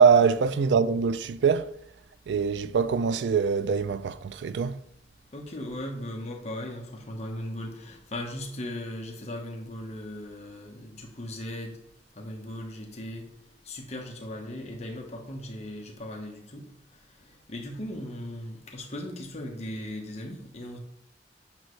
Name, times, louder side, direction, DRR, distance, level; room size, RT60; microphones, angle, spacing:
voice 1, 0.0-1.7 2.3-4.8, right 6 dB, 85° right, 0.4 m, -23 dB
voice 2, 5.3-11.8 12.2-13.3 13.6-16.6 17.2-20.8, left 1 dB, 40° left, 1.1 m, -38 dB
8.8 x 6.4 x 3.2 m
head